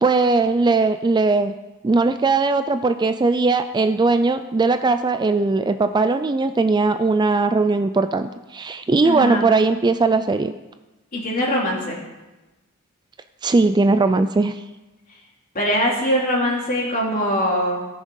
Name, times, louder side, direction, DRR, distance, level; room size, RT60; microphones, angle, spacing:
voice 1, 0.0-1.5 1.8-10.5 13.4-14.6, right 3 dB, 20° right, 9 dB, 0.3 m, -19 dB
voice 2, 9.0-9.5 11.1-12.0 15.5-17.8, equal, 40° left, -3 dB, 3.1 m, -22 dB
17.5 x 6.4 x 5.4 m, 1.1 s
head